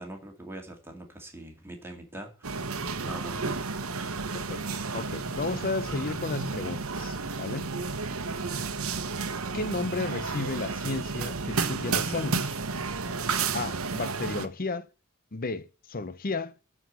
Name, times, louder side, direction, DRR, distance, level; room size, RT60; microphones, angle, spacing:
voice 1, 0.0-3.6 8.1-8.4 13.4-13.5, right 1 dB, 10° right, 2.2 m, -44 dB
sound 1, 2.4-14.5, right 4 dB, 90° right, 1.1 m, -32 dB
voice 2, 4.3-7.7 9.5-12.6 13.5-14.9 15.3-16.5, left 3 dB, 45° left, 0.8 m, -33 dB
11.5 x 4.9 x 7.7 m
head